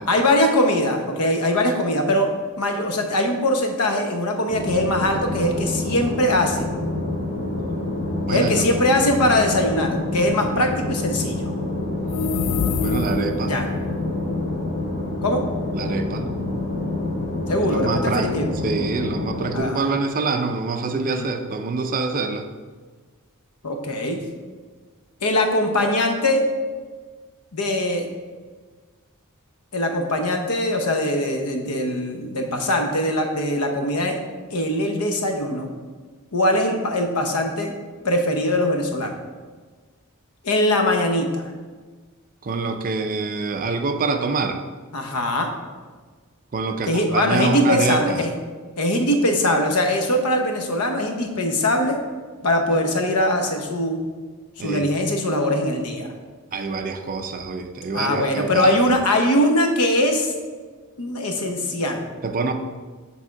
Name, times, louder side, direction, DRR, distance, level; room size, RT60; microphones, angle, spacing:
voice 1, 0.1-2.3 2.6-6.7 8.3-11.4 13.5-13.7 15.2-15.4 17.5-18.5 19.5-20.0 20.9-21.3 23.6-24.2 25.2-26.4 27.5-28.1 29.7-34.2 34.5-35.7 36.3-37.7 38.0-39.1 40.4-41.4 44.9-45.5 46.8-48.3 48.8-52.0 52.4-54.0 54.6-56.1 57.9-60.3 61.0-62.0, left 1 dB, 90° left, 4 dB, 0.9 m, -21 dB
sound 1, 4.5-19.6, left 2 dB, 45° left, 1.7 m, -27 dB
voice 2, 8.3-8.6 12.8-13.5 15.8-16.3 17.7-18.3 18.6-22.4 42.4-44.6 46.5-48.3 54.6-54.9 56.5-58.9 62.2-62.5, right 4 dB, 40° right, 6 dB, 0.4 m, -25 dB
sound 2, 12.0-13.5, left 5 dB, 70° left, 0.3 m, -25 dB
7.4 x 3.5 x 4.6 m, 1.4 s
head